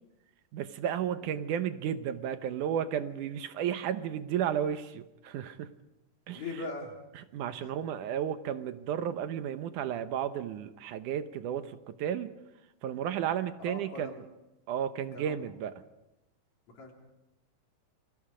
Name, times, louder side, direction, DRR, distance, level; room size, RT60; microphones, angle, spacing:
voice 1, 0.5-5.7 6.3-6.4 7.2-12.3 12.8-14.2 14.7-15.7, right 9 dB, 75° right, 10 dB, 2.4 m, -33 dB
voice 2, 6.3-6.9 7.6-7.9 13.6-14.2 15.1-15.3 16.7-16.9, left 3 dB, 60° left, 1 dB, 4.6 m, -40 dB
29.5 x 23.0 x 5.0 m, 0.94 s
omnidirectional pair, 3.6 m